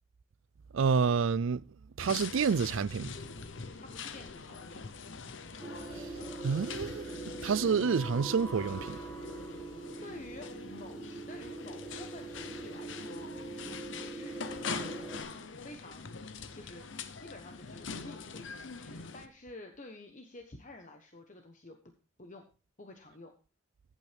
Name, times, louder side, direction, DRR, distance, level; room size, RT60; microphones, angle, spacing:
voice 1, 0.7-1.6 2.0-3.1 6.0-6.1 6.4-7.0 7.4-9.0, right 5 dB, 75° right, 0.4 m, -28 dB
sound 1, 2.0-19.3, left 5 dB, 65° left, 0.9 m, -44 dB
voice 2, 3.8-5.2 9.4-16.1 16.5-16.9 17.2-21.8 22.2-22.4 22.8-23.3, left 2 dB, 40° left, 1.1 m, -50 dB
sound 2, 5.6-15.2, right 2 dB, ahead, 2.1 m, -43 dB
14.5 x 8.6 x 3.4 m
head